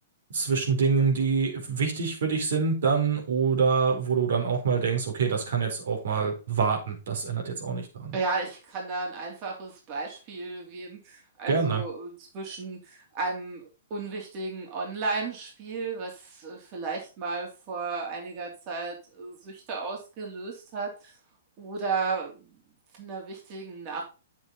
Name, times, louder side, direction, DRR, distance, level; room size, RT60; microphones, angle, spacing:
voice 1, 0.3-8.2 11.5-11.8, right 5 dB, 75° right, 1 dB, 4.2 m, -26 dB
voice 2, 8.1-21.1 21.6-22.5 23.0-24.0, right 4 dB, 35° right, -1 dB, 3.2 m, -34 dB
8.0 x 7.5 x 4.0 m, 0.32 s
hypercardioid pair, 145°, 0 cm